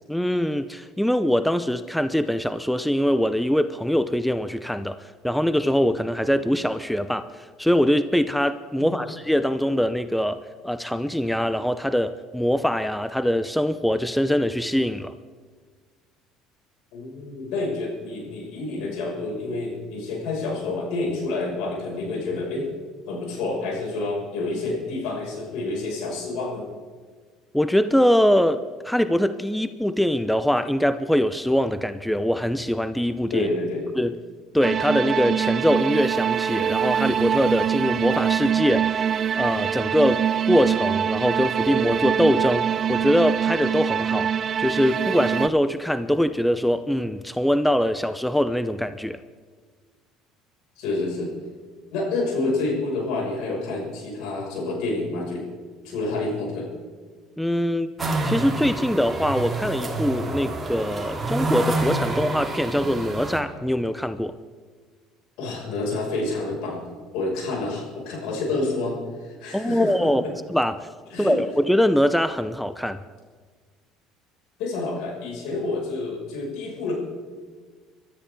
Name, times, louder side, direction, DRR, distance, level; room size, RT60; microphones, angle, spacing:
voice 1, 0.1-15.1 27.5-33.5 34.0-34.2 34.5-49.2 57.4-57.9 58.2-64.3 69.5-70.2 70.5-70.9 71.2-73.0, equal, 5° left, 12 dB, 0.6 m, -23 dB
voice 2, 16.9-22.7 23.1-26.7 33.3-33.9 50.8-51.3 51.9-55.5 55.8-56.7 65.4-66.9 67.1-70.3 71.1-71.3 74.6-76.9, left 2 dB, 70° left, -2 dB, 6.1 m, -28 dB
sound 1, 34.6-45.5, right 8 dB, 45° right, 0.5 m, -24 dB
sound 2, 58.0-63.4, right 2 dB, 25° right, 2.8 m, -28 dB
24.0 x 13.0 x 3.8 m, 1.5 s
hypercardioid pair, 75°, 0 cm